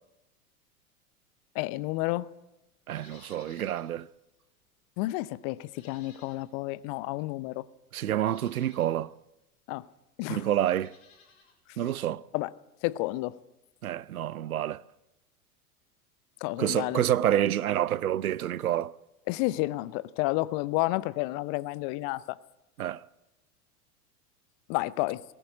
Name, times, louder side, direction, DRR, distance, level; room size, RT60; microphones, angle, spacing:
voice 1, 1.5-2.3 5.0-7.7 9.7-9.9 10.2-10.4 12.3-12.5 12.8-13.4 16.4-17.0 19.3-22.4 24.7-25.2, left 19 dB, 35° left, 0.7 m, -30 dB
Livestock farm animals working animals, 2.9-3.9 4.3-4.4 5.7-6.7 7.5-7.6 8.2-9.0 10.6-11.6 11.8-11.9, left 4 dB, 50° left, 6.5 m, -58 dB
voice 2, 2.9-4.1 7.9-9.1 10.3-10.9 11.8-12.2 13.8-14.8 16.6-18.9 22.8-23.0, right 11 dB, 70° right, 0.7 m, -28 dB
19.5 x 17.5 x 8.1 m
figure-of-eight pair, 90°, 44 cm